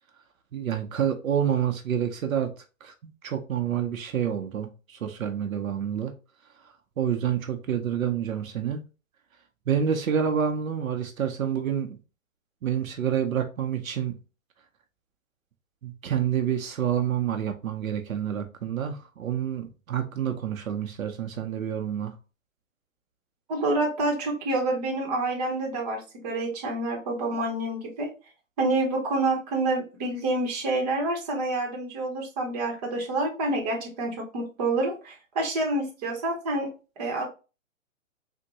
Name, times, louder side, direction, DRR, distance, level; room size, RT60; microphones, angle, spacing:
voice 1, 0.5-2.5 2.8-6.1 7.0-8.8 9.7-12.0 12.6-14.1 15.8-22.1, right 9 dB, 80° right, 0.7 m, -28 dB
voice 2, 23.5-28.1 28.6-36.7 37.0-37.3, right 2 dB, 30° right, 0.9 m, -28 dB
3.6 x 2.2 x 2.8 m
hypercardioid pair, 145°, 40 cm